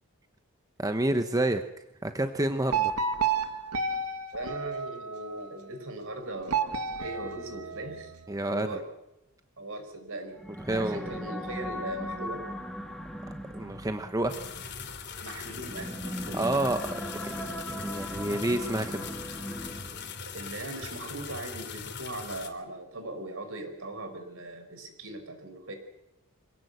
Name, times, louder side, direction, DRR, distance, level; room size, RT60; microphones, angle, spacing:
voice 1, 0.8-1.6 2.0-2.9 8.3-8.8 10.7-11.1 13.5-14.4 16.3-17.5 17.8-19.1, right 1 dB, 15° right, 7 dB, 0.9 m, -29 dB
sound 1, 2.7-5.4 6.5-8.2, right 5 dB, 90° right, 1.8 m, -31 dB
voice 2, 4.3-8.1 8.5-8.9 9.6-10.4 10.7-12.5 15.2-16.5 20.2-25.7, right 1 dB, 60° right, 7 dB, 4.9 m, -39 dB
sound 2, 10.3-20.2, equal, ahead, 1.8 m, -38 dB
sound 3, 14.3-22.5, left 6 dB, 50° left, 3.2 m, -41 dB
26.0 x 17.5 x 8.1 m, 0.90 s
head